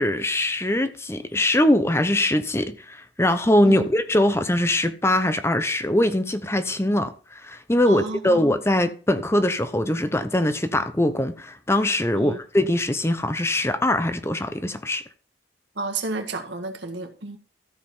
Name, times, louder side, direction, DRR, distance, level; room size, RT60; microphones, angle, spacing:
voice 1, 0.0-15.0, left 1 dB, 15° left, 0.9 m, -22 dB
voice 2, 7.9-8.4 12.1-12.4 15.8-17.4, right 3 dB, 85° right, 1.8 m, -31 dB
14.0 x 5.0 x 5.5 m
head